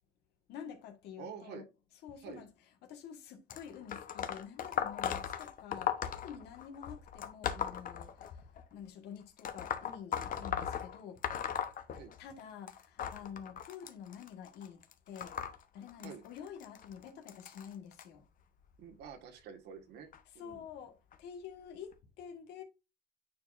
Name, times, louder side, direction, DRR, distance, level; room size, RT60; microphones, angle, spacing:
voice 1, 0.5-1.6 2.0-2.5 2.8-11.2 11.9-15.4 15.7-18.3 20.4-22.6, left 8 dB, 80° left, 1.6 m, -48 dB
voice 2, 1.2-1.6 2.2-2.4 11.9-12.1 16.0-16.2 18.8-20.1 20.3-20.6, right 7 dB, 80° right, 1.7 m, -48 dB
sound 1, 3.5-8.6 9.4-12.4 12.7-18.0 18.8-19.1 20.1-20.2 21.1-21.2 21.9-22.0, left 9 dB, 55° left, 1.0 m, -38 dB
9.3 x 4.7 x 2.5 m
cardioid pair, 110°, 17 cm